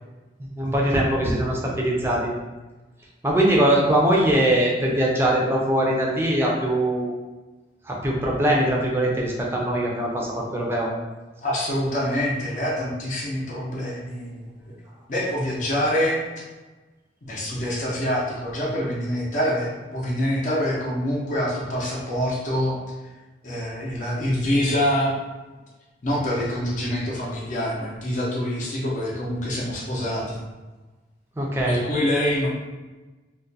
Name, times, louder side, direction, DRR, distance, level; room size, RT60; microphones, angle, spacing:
voice 1, 0.4-2.3 3.2-7.1 7.9-10.9 31.4-31.8, right 1 dB, 15° right, -2 dB, 0.5 m, -22 dB
voice 2, 11.4-14.5 15.1-16.2 17.2-22.8 23.4-25.1 26.0-30.4 31.6-32.5, equal, 45° left, -5 dB, 0.6 m, -25 dB
2.4 x 2.2 x 3.9 m, 1.2 s
head